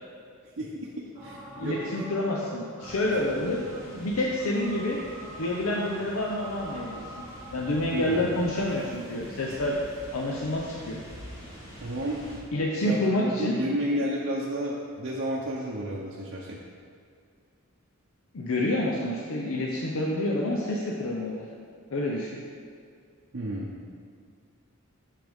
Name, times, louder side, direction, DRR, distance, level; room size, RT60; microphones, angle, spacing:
voice 1, 0.6-0.9 1.2-2.0 7.9-8.3 11.8-12.5 12.8-16.6 23.3-23.7, right 1 dB, 60° right, -5 dB, 0.7 m, -32 dB
sound 1, 1.1-9.9, right 1 dB, 15° right, 1.4 m, -46 dB
voice 2, 1.6-3.6 3.9-5.0 5.4-7.2 7.5-9.8 10.1-11.0 12.5-13.6 18.3-21.4 21.9-22.3, left 1 dB, 90° left, -3 dB, 0.7 m, -28 dB
sound 2, 2.8-12.4, equal, 65° left, 1.7 m, -45 dB
6.6 x 6.2 x 3.5 m, 2.3 s
head